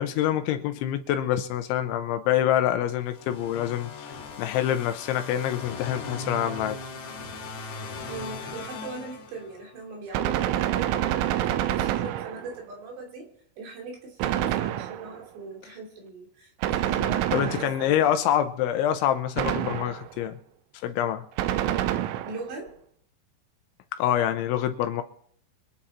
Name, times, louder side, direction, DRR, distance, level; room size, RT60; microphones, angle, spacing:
voice 1, 0.0-6.8 17.3-20.4 20.8-21.3 24.0-25.0, left 11 dB, 80° left, 8 dB, 3.0 m, -26 dB
sound 1, 3.1-9.8, left 3 dB, 60° left, 3.6 m, -39 dB
voice 2, 8.1-13.3 13.6-18.1 22.2-22.7, right 3 dB, 60° right, 1 dB, 4.9 m, -40 dB
Gunshot gunfire, 10.1-12.6 14.2-15.3 16.6-18.1 19.4-20.2 21.4-22.5, right 12 dB, 85° right, 3.3 m, -27 dB
25.5 x 8.7 x 4.3 m, 0.64 s
omnidirectional pair, 5.7 m